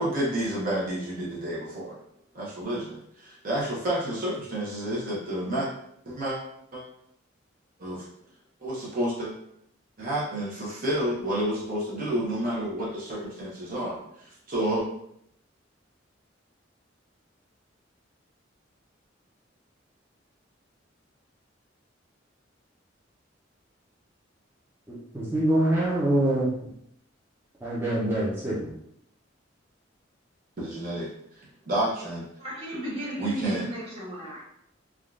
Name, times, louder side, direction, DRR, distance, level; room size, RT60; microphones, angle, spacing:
voice 1, 0.0-2.0 2.3-5.7 6.1-6.4 6.7-6.8 7.8-8.0 8.6-9.3 10.0-14.0 14.2-14.8 30.6-31.1 31.7-32.2 33.2-33.7, right 1 dB, 45° right, -6 dB, 0.7 m, -29 dB
voice 2, 24.9-26.7 27.6-28.7, right 1 dB, 10° right, -8 dB, 0.6 m, -25 dB
voice 3, 32.4-34.4, equal, 30° right, -6 dB, 1.1 m, -35 dB
3.5 x 2.3 x 2.4 m, 0.73 s
head